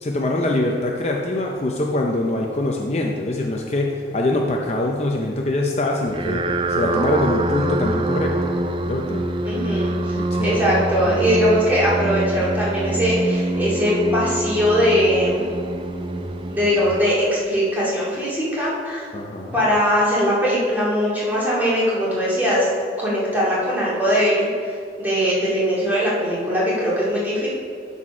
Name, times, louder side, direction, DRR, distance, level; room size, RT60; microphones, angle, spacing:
voice 1, 0.0-8.6 8.9-9.2 10.1-10.6 11.1-11.3 19.1-19.6, left 1 dB, 35° left, 0 dB, 0.6 m, -24 dB
sound 1, 6.1-17.5, right 2 dB, 30° right, 0.3 m, -25 dB
voice 2, 9.4-15.4 16.5-19.1 19.5-22.7 23.0-27.5, equal, 10° right, -8 dB, 2.3 m, -21 dB
12.0 x 4.2 x 4.9 m, 2.2 s
head